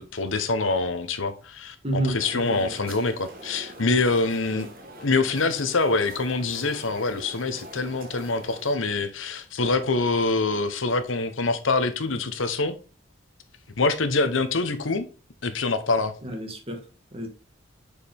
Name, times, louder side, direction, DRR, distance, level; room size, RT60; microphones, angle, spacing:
voice 1, 0.0-4.7 5.0-12.7 13.8-15.1 15.4-16.1, left 3 dB, 80° left, 1.0 m, -25 dB
voice 2, 1.8-2.7 4.5-4.7 16.2-16.8 17.1-17.3, right 1 dB, 30° right, 1.6 m, -30 dB
sound 1, 2.2-8.8, right 1 dB, 45° right, 1.3 m, -44 dB
6.8 x 4.9 x 3.5 m
head